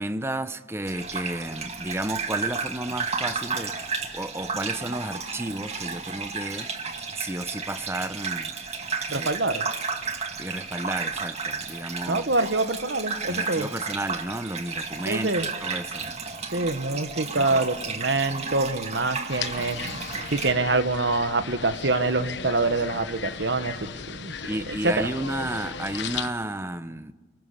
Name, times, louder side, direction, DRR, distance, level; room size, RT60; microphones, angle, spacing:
voice 1, 0.0-8.5 9.1-9.3 10.4-12.4 13.3-16.1 17.3-17.7 24.5-27.1, right 1 dB, 15° right, 0.9 m, -32 dB
Gurgling / Bathtub (filling or washing), 0.9-20.5, right 5 dB, 35° right, 2.0 m, -33 dB
voice 2, 9.1-9.7 12.1-13.7 15.1-15.5 16.5-20.0 20.3-24.3 24.7-25.1, right 3 dB, 70° right, 1.4 m, -25 dB
sound 1, 19.3-26.3, left 6 dB, 70° left, 1.0 m, -36 dB
29.5 x 19.5 x 6.8 m
head